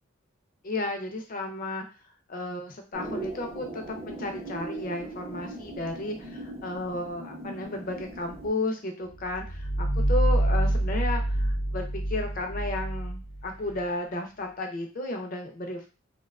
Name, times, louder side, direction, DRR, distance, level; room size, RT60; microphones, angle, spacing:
voice 1, 0.6-1.8 2.3-15.9, left 2 dB, 40° left, 4 dB, 0.4 m, -33 dB
sound 1, 2.9-8.5, right 2 dB, 30° right, 0.5 m, -39 dB
sound 2, 9.1-13.8, right 1 dB, 90° left, 0.5 m, -26 dB
2.6 x 2.2 x 2.3 m, 0.33 s
head